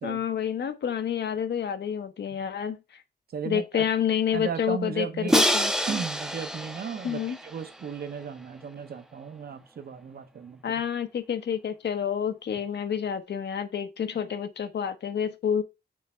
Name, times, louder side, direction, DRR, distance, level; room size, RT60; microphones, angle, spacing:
voice 1, 0.0-2.8 3.4-5.7 7.0-7.4 10.6-15.6, left 8 dB, 90° left, 0.9 m, -29 dB
voice 2, 3.3-3.9 4.3-5.4 5.9-10.8, right 6 dB, 65° right, 0.8 m, -35 dB
Crash cymbal, 5.3-8.2, equal, 5° right, 0.5 m, -27 dB
6.5 x 3.4 x 4.2 m
wide cardioid pair, 165°, 17 cm